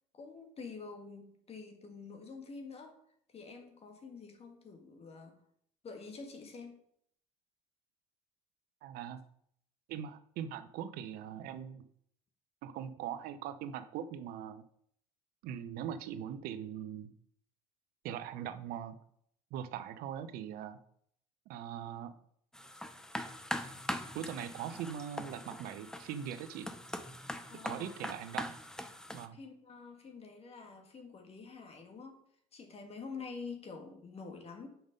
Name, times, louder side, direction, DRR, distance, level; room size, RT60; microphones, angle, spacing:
voice 1, 0.1-3.0 3.3-5.4 5.8-6.8 27.5-28.0 29.3-32.2 32.5-34.7, left 4 dB, 40° left, 4 dB, 1.8 m, -47 dB
voice 2, 8.8-9.2 9.9-11.8 12.6-14.6 15.4-17.1 18.0-19.0 19.5-20.8 21.5-22.1 24.1-26.7 27.6-28.6 29.1-29.4, right 9 dB, 70° right, 12 dB, 0.7 m, -41 dB
sound 1, 22.5-29.3, left 1 dB, 5° left, 0.7 m, -42 dB
6.0 x 5.2 x 5.2 m, 0.68 s
supercardioid pair, 80°, 16 cm